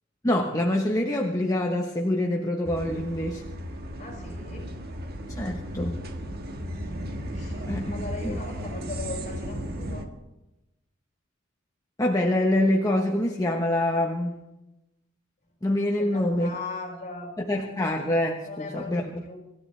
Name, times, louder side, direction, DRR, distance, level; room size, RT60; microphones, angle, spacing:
voice 1, 0.2-3.4 5.4-6.0 7.7-8.4 12.0-14.3 15.6-16.5 17.4-19.3, left 1 dB, 15° left, 1 dB, 1.1 m, -25 dB
sound 1, 2.6-10.1, equal, 50° right, 1.5 m, -35 dB
voice 2, 4.0-4.7 7.3-10.1 16.0-17.3 18.5-19.4, left 3 dB, 40° left, 1 dB, 5.7 m, -38 dB
27.0 x 14.0 x 3.3 m, 0.94 s
head